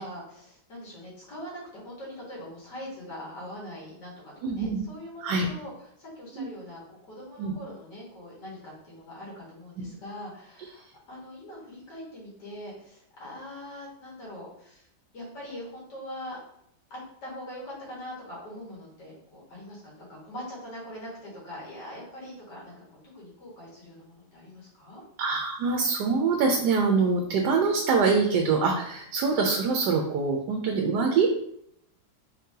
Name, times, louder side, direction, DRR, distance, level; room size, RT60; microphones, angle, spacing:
voice 1, 0.0-5.7 6.0-14.9 15.1-16.4 16.9-22.8 23.1-25.0, left 1 dB, 85° left, -5 dB, 2.2 m, -42 dB
voice 2, 4.4-4.8 5.2-5.5 6.3-6.5 7.4-7.5 25.2-31.4, right 4 dB, 85° right, 2 dB, 1.2 m, -24 dB
4.1 x 3.6 x 2.7 m, 0.72 s
omnidirectional pair, 1.8 m